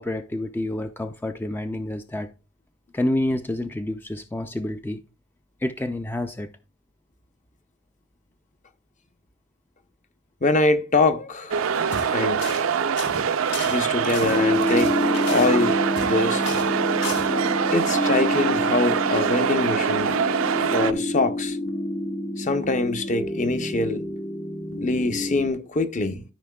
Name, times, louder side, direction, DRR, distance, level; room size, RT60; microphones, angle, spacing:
voice 1, 0.0-2.3 2.9-5.0 5.6-6.5, left 1 dB, 10° left, 0.4 m, -28 dB
voice 2, 10.4-11.6 12.1-12.6 13.6-14.9 15.3-16.4 17.7-20.3 20.6-21.6 22.4-24.1 24.8-26.2, left 2 dB, 40° left, 0.8 m, -24 dB
sound 1, 11.5-20.9, right 6 dB, 75° right, 0.5 m, -24 dB
sound 2, 11.8-12.1 12.4-12.7 13.0-16.2 16.4-16.7 17.0-17.3, left 4 dB, 65° left, 3.3 m, -35 dB
sound 3, 14.2-25.5, left 1 dB, 80° left, 1.7 m, -28 dB
13.0 x 5.4 x 2.3 m
head